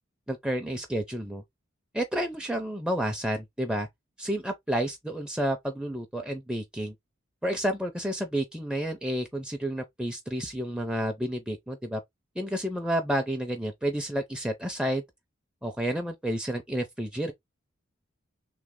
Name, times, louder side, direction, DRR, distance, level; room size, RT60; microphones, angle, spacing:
voice 1, 0.3-1.4 1.9-3.9 4.2-6.9 7.4-12.0 12.4-15.0 15.6-17.3, equal, 5° right, 0.4 m, -30 dB
3.2 x 3.1 x 3.7 m
head